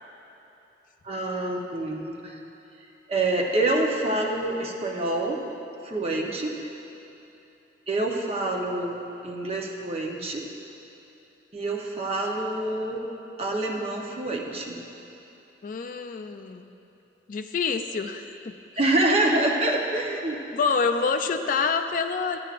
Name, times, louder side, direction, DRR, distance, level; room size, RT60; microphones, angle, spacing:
voice 1, 1.0-2.4 3.1-5.4 5.8-6.5 7.9-8.9 9.2-10.4 11.5-13.0 13.4-14.8 18.8-20.4, right 2 dB, 35° right, 0 dB, 0.8 m, -26 dB
voice 2, 15.6-16.7 17.3-18.5 20.5-22.4, left 5 dB, 50° left, 7 dB, 0.4 m, -27 dB
14.0 x 9.2 x 2.5 m, 3.0 s
head